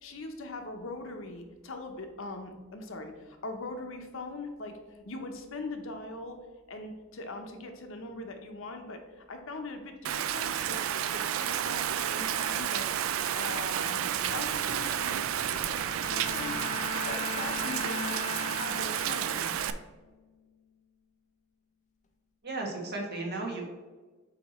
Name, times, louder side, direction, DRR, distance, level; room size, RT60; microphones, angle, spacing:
voice 1, 0.0-6.4 6.7-10.8 11.1-12.9 13.3-15.8 16.0-16.6 17.0-18.2 18.5-19.5, left 2 dB, 70° left, 5 dB, 0.8 m, -41 dB
Rain, 10.0-19.7, right 9 dB, 75° right, 0.4 m, -31 dB
Bowed string instrument, 15.8-19.4 19.9-20.3, left 4 dB, 35° left, 0.5 m, -39 dB
voice 2, 22.4-23.7, right 2 dB, 50° right, 0 dB, 1.3 m, -34 dB
7.8 x 2.9 x 4.2 m, 1.3 s
head